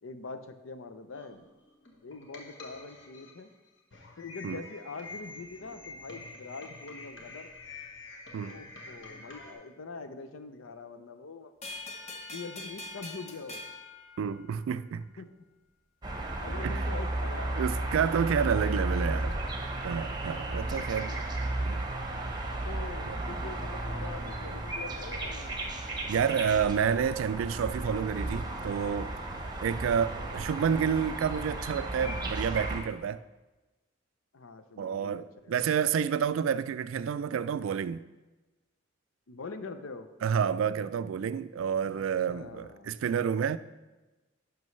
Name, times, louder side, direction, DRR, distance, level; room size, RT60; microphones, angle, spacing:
voice 1, 0.0-1.5 2.0-3.5 4.2-7.5 8.4-11.5 12.3-13.7 15.2-15.3 16.3-17.9 18.7-19.4 20.6-21.2 22.7-25.6 29.7-30.1 34.3-35.9 39.3-40.1 41.8-43.0, left 4 dB, 90° left, 0.6 m, -44 dB
sound 1, 1.1-9.5, left 3 dB, 65° left, 1.2 m, -47 dB
sound 2, 11.6-14.9, left 2 dB, 35° left, 0.8 m, -43 dB
voice 2, 14.2-15.1 16.6-16.8 17.6-19.3 19.8-21.1 21.6-21.9 23.1-23.2 26.1-29.2 29.6-33.2 34.8-38.0 40.2-43.6, right 7 dB, 80° right, 0.3 m, -29 dB
sound 3, 16.0-32.8, right 2 dB, 20° right, 0.8 m, -34 dB
10.5 x 6.1 x 3.2 m
head